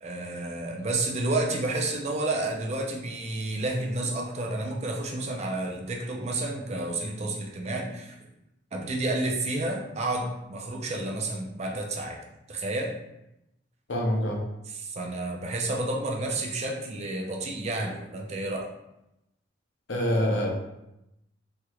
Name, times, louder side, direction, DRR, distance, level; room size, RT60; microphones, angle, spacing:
voice 1, 0.0-8.2 8.7-12.2 12.5-13.0 14.7-18.7, right 2 dB, 35° right, 1 dB, 0.4 m, -30 dB
voice 2, 13.9-14.4 19.9-20.5, equal, 75° left, -2 dB, 0.7 m, -25 dB
3.0 x 3.0 x 2.3 m, 0.88 s
head